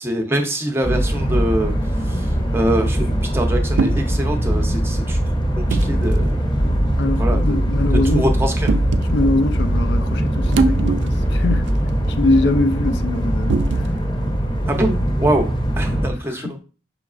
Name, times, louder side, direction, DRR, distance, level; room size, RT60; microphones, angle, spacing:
voice 1, 0.0-5.2 5.8-6.6 7.2-7.6 8.0-8.7 14.7-15.5 15.8-16.6, right 1 dB, 15° right, 0.6 m, -24 dB
sound 1, 0.8-16.1, right 1 dB, 25° left, 0.8 m, -21 dB
sound 2, 1.8-2.1 3.8-4.1 5.7-5.9 7.0-7.2 8.7-9.1 10.5-11.3 11.7-11.8 13.5-14.0, right 4 dB, 80° right, 0.4 m, -22 dB
voice 2, 6.6-8.3 9.1-11.7 12.1-13.9 16.3-16.6, left 2 dB, 65° left, 0.3 m, -23 dB
5.7 x 3.0 x 2.4 m
head